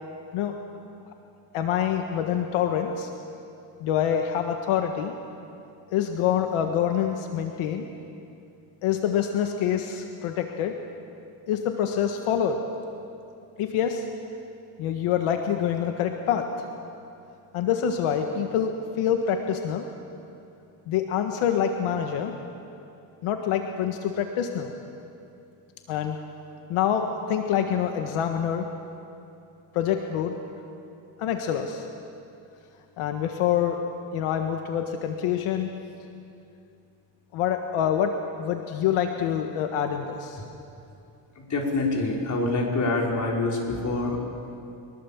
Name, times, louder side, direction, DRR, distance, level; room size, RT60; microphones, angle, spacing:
voice 1, 1.5-3.1 3.8-5.1 5.9-7.9 8.8-10.8 11.5-12.6 13.6-14.1 14.8-16.5 17.5-19.9 20.9-22.3 23.2-24.7 25.9-26.2 26.7-28.7 29.7-30.4 31.2-31.9 33.0-33.8 34.1-35.7 37.3-40.4, left 9 dB, 80° left, 5 dB, 1.6 m, -26 dB
voice 2, 41.3-44.2, left 2 dB, 35° left, -1 dB, 5.0 m, -26 dB
23.5 x 22.0 x 7.3 m, 2.7 s
cardioid pair, 125°, 49 cm